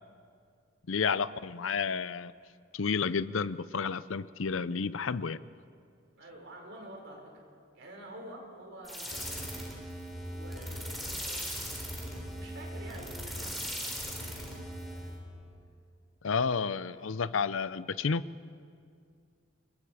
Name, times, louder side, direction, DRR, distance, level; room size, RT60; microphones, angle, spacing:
voice 1, 0.9-2.3 2.7-5.4 16.2-18.2, left 5 dB, 75° left, 16 dB, 0.6 m, -31 dB
voice 2, 6.2-7.4 7.7-11.5 12.4-15.2 16.9-17.2, right 1 dB, 65° right, 0 dB, 5.6 m, -49 dB
sound 1, 8.8-15.2, equal, ahead, 4.8 m, -39 dB
sound 2, 10.1-15.6, right 1 dB, 25° left, 3.4 m, -51 dB
29.5 x 23.5 x 4.9 m, 2.3 s
head